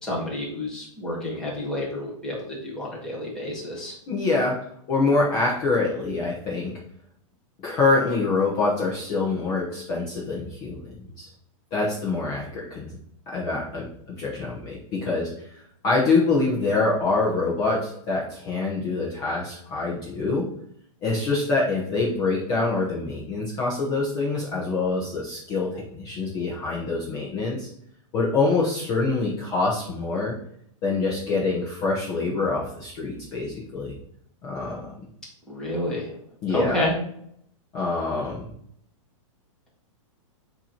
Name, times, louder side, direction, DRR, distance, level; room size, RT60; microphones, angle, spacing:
voice 1, 0.0-3.9 35.5-36.1 36.5-37.0, left 1 dB, 5° left, -6 dB, 1.4 m, -29 dB
voice 2, 4.1-6.7 7.6-11.3 11.7-13.0 13.3-20.5 21.0-27.7 28.1-30.4 30.8-34.0 34.4-34.9 36.4-36.8 37.7-38.5, left 3 dB, 25° left, -5 dB, 0.9 m, -25 dB
7.9 x 2.9 x 4.4 m, 0.70 s
supercardioid pair, 175°, 17 cm